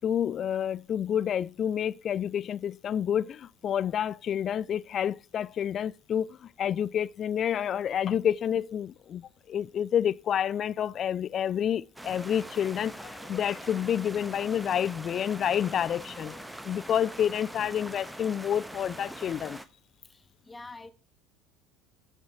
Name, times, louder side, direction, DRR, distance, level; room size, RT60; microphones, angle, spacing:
voice 1, 0.0-19.6, left 9 dB, 40° left, 0.5 m, -29 dB
sound 1, 12.0-19.7, right 1 dB, 5° right, 1.2 m, -43 dB
voice 2, 20.1-20.9, left 3 dB, 15° left, 1.2 m, -46 dB
14.5 x 7.3 x 3.5 m
figure-of-eight pair, 65°, 0 cm